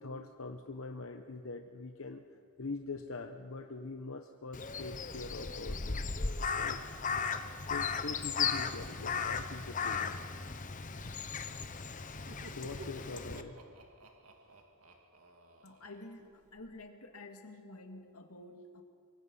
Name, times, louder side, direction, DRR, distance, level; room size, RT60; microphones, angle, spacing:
voice 1, 0.0-2.2 2.6-6.0 6.5-6.8 7.6-10.2 12.6-13.6, left 3 dB, 65° left, 5 dB, 1.0 m, -43 dB
Crow, 4.5-13.4, left 5 dB, 35° left, 1.0 m, -36 dB
Laughter, 12.3-16.7, right 2 dB, 85° right, 2.2 m, -54 dB
voice 2, 15.6-18.8, left 2 dB, 90° left, 4 dB, 2.4 m, -50 dB
24.5 x 24.0 x 5.6 m, 2.4 s
head